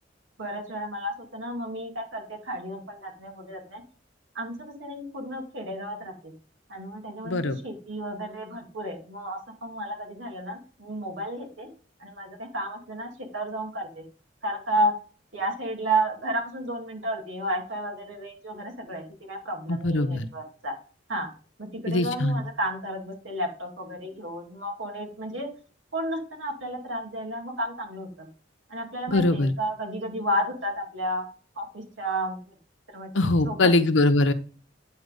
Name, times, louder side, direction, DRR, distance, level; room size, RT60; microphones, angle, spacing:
voice 1, 0.4-3.8 4.3-6.3 6.7-11.7 12.0-14.0 14.4-14.9 15.3-20.7 21.1-21.3 21.6-25.5 25.9-28.3 28.7-31.2 31.6-32.4 32.9-33.7, right 1 dB, 85° right, 1 dB, 2.5 m, -32 dB
voice 2, 7.2-7.6 19.7-20.3 21.9-22.4 29.1-29.5 33.1-34.3, left 2 dB, 75° left, 9 dB, 0.9 m, -22 dB
9.7 x 4.4 x 5.3 m, 0.39 s
head